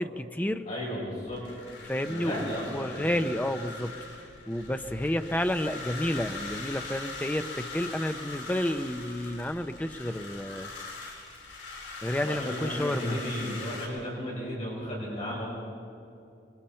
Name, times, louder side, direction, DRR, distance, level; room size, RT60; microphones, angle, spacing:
voice 1, 0.0-0.7 1.8-3.9 4.5-10.7 12.0-13.2, left 1 dB, 10° left, 8 dB, 0.7 m, -30 dB
voice 2, 0.7-1.4 2.1-3.3 12.2-15.5, equal, 40° left, -5 dB, 6.2 m, -34 dB
sound 1, 1.3-13.9, left 3 dB, 85° left, 4.9 m, -41 dB
25.5 x 23.0 x 4.4 m, 2.6 s
head